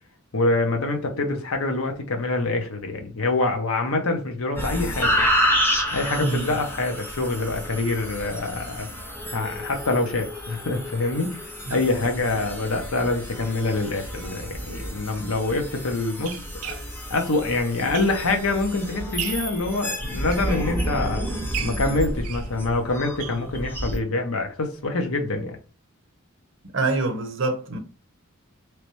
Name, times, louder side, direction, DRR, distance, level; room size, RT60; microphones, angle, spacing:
voice 1, 0.3-5.2 5.9-8.9 9.3-11.4 11.7-16.7 17.1-21.2 21.6-25.6, left 2 dB, 80° left, 0.9 m, -25 dB
sound 1, 4.5-24.0, equal, 10° left, 0.6 m, -30 dB
voice 2, 6.2-6.5 11.7-11.8 26.7-27.8, right 3 dB, 60° right, 0.7 m, -25 dB
sound 2, 14.7-14.8 15.5-18.5 18.9-19.6 20.1-21.1 21.5-24.0 24.4-24.5 24.8-24.9 25.2-25.3, right 10 dB, 85° right, 0.4 m, -37 dB
3.2 x 3.1 x 3.1 m
head